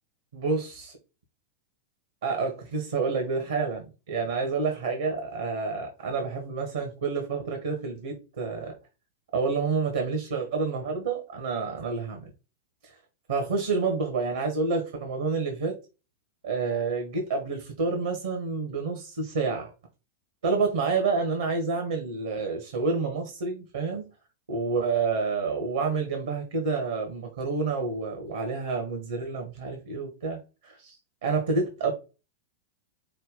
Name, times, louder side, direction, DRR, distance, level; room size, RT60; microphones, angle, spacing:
voice 1, 0.3-1.0 2.2-8.8 9.3-12.3 12.8-12.9 13.3-15.8 16.4-19.7 20.4-24.0 24.5-30.9 31.2-31.9, right 4 dB, 70° right, 1.2 m, -29 dB
5.7 x 2.3 x 3.6 m
figure-of-eight pair, 95°, 0 cm